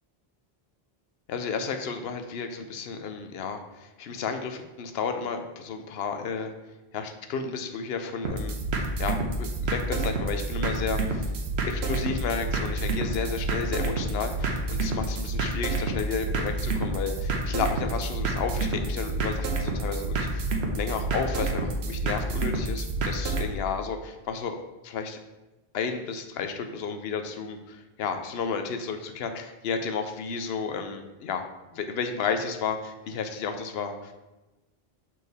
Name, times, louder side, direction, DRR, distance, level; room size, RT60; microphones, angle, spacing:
voice 1, 1.3-6.5 6.9-8.6 9.0-11.3 11.7-24.6 24.8-25.2 25.7-31.4 31.7-34.1, left 5 dB, 80° left, 6 dB, 0.9 m, -32 dB
sound 1, 8.2-23.5, right 2 dB, 85° right, 1.1 m, -29 dB
6.2 x 4.4 x 3.4 m, 1.1 s
omnidirectional pair, 1.0 m